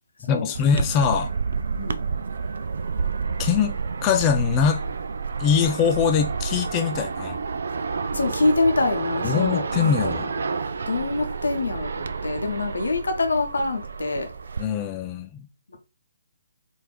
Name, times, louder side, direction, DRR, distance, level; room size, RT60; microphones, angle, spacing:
voice 1, 0.2-1.3 3.4-3.8 4.0-4.8 5.4-7.4 9.2-10.3 14.6-15.5, left 7 dB, 20° left, 0.4 m, -22 dB
sound 1, 0.5-14.6, right 5 dB, 55° right, 0.3 m, -29 dB
voice 2, 8.1-10.6 10.9-14.3, left 2 dB, 65° left, 0.8 m, -25 dB
4.3 x 2.6 x 3.2 m
figure-of-eight pair, 140°, 0 cm